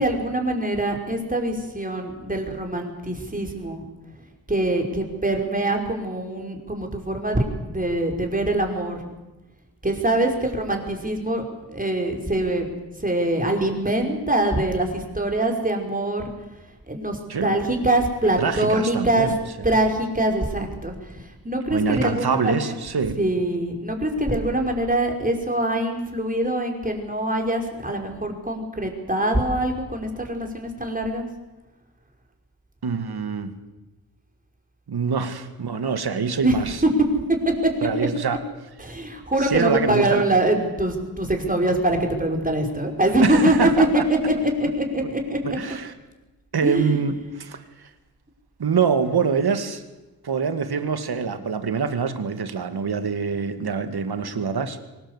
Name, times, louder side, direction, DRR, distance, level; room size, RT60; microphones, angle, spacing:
voice 1, 0.0-3.9 4.5-9.0 9.8-12.7 13.0-16.3 16.9-19.3 19.6-22.7 23.2-31.2 36.4-36.5 36.8-36.9 37.6-37.7 38.8-45.4 46.6-47.0, right 1 dB, 20° right, 2 dB, 5.4 m, -23 dB
voice 2, 18.4-19.3 21.7-23.2 32.8-33.5 34.9-36.8 37.8-38.4 39.5-40.2 43.2-44.0 45.4-45.9 46.5-47.9 48.6-49.8 50.2-54.8, right 6 dB, 70° right, 9 dB, 2.3 m, -25 dB
24.0 x 19.5 x 8.2 m, 1.1 s
cardioid pair, 75°, 39 cm